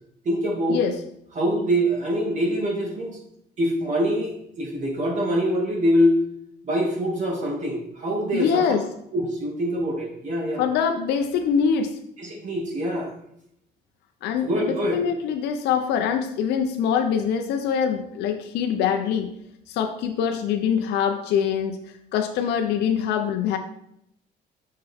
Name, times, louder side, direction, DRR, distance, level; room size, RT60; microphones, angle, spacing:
voice 1, 0.2-0.8 1.3-3.2 3.6-6.2 6.6-8.6 9.1-10.6 12.2-13.1 14.4-15.0, equal, 45° right, -1 dB, 2.1 m, -24 dB
voice 2, 8.3-8.8 10.6-12.0 14.2-19.3 19.7-21.8 22.1-23.6, left 7 dB, 80° left, 4 dB, 0.6 m, -24 dB
6.6 x 5.5 x 3.5 m, 0.75 s
cardioid pair, 110°, 17 cm